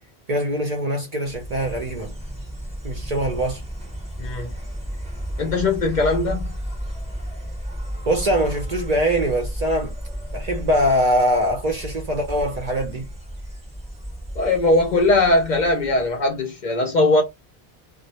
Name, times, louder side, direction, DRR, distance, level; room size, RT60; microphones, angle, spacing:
voice 1, 0.3-2.2 2.8-3.6 8.1-9.9 10.3-13.1, equal, 45° right, 0.6 m, -22 dB
Insect, 1.2-16.3, equal, 5° right, 0.7 m, -33 dB
voice 2, 4.2-4.5 5.4-6.5 14.4-17.2, left 2 dB, 55° left, 0.6 m, -20 dB
2.1 x 2.1 x 2.8 m
omnidirectional pair, 1.1 m